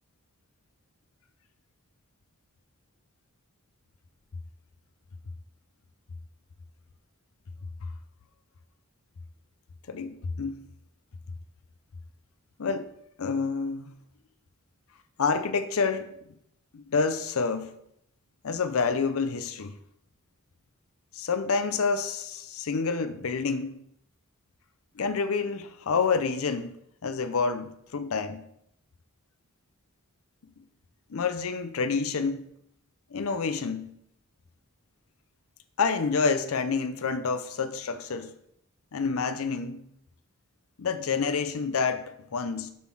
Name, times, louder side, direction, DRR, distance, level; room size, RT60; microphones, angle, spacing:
voice 1, 9.9-10.6 12.6-12.9 13.2-13.9 15.2-16.1 16.7-17.7 18.4-19.8 21.1-23.8 25.0-26.8 27.0-28.4 31.1-32.5 33.1-33.9 35.8-38.3 38.9-39.9 40.8-42.7, left 5 dB, 70° left, 0.5 m, -28 dB
7.0 x 3.9 x 6.1 m
head